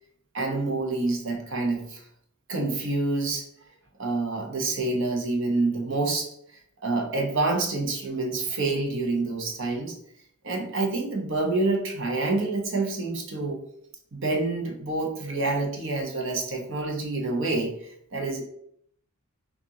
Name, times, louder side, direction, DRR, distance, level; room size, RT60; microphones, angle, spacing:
voice 1, 0.3-2.0 2.5-3.4 4.0-6.3 6.8-9.9 10.4-13.6 14.1-18.4, right 2 dB, 60° right, 1 dB, 1.0 m, -27 dB
6.2 x 2.7 x 2.9 m, 0.69 s
head